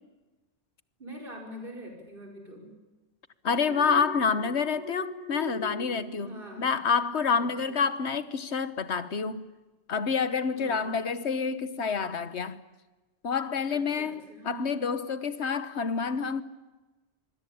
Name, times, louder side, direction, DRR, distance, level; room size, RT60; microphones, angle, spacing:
voice 1, 1.0-2.7 6.2-6.7 7.4-7.7 10.5-10.9 13.7-14.9, equal, 50° right, 5.6 m, -44 dB
voice 2, 3.4-9.5 9.9-12.6 13.2-16.4, left 5 dB, 75° left, 1.5 m, -28 dB
Alarm, 3.5-6.8 7.2-7.5, left 1 dB, 45° left, 5.8 m, -40 dB
26.0 x 21.5 x 8.7 m
omnidirectional pair, 1.1 m